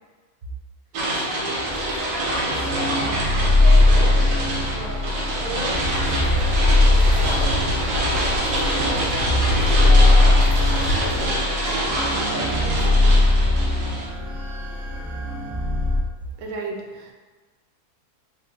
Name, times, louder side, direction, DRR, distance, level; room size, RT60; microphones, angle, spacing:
sound 1, 0.9-14.1, right 1 dB, 90° right, 1.3 m, -26 dB
voice 1, 1.1-5.1 5.3-7.6 8.1-10.7 11.1-13.3, equal, 55° right, -8 dB, 0.7 m, -35 dB
sound 2, 1.6-16.0, left 2 dB, 30° left, 0.4 m, -20 dB
sound 3, 5.7-11.3, left 1 dB, 50° left, 0.9 m, -27 dB
voice 2, 16.4-17.1, right 3 dB, 75° right, 0 dB, 1.0 m, -32 dB
3.6 x 2.1 x 3.1 m, 1.4 s
omnidirectional pair, 1.6 m